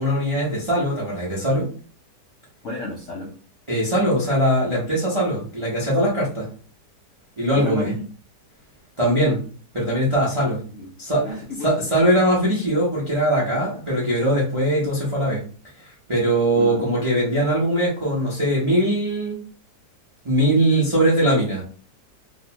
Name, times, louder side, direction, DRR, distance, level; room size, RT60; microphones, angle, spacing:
voice 1, 0.0-1.7 3.7-6.5 7.4-7.9 9.0-9.4 9.7-10.6 11.0-11.2 11.6-15.4 15.8-19.4 20.2-21.6, right 1 dB, 35° right, -5 dB, 0.4 m, -21 dB
voice 2, 2.6-3.3 7.5-8.0 10.8-10.9 11.2-11.9 16.5-16.9, left 2 dB, 70° left, -2 dB, 0.7 m, -32 dB
2.8 x 2.1 x 2.8 m, 0.41 s
omnidirectional pair, 1.9 m